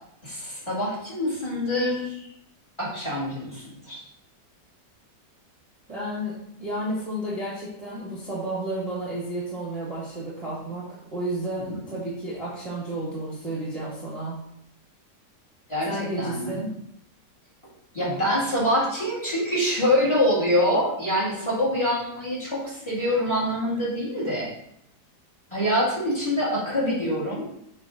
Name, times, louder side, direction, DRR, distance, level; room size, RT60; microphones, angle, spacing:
voice 1, 0.2-2.3 2.8-4.0 15.7-16.6 17.9-24.5 25.5-27.5, equal, 15° left, -7 dB, 2.3 m, -25 dB
voice 2, 5.9-14.4 15.8-16.7, right 1 dB, 20° right, -7 dB, 1.4 m, -32 dB
7.2 x 3.5 x 3.8 m, 0.73 s
omnidirectional pair, 1.8 m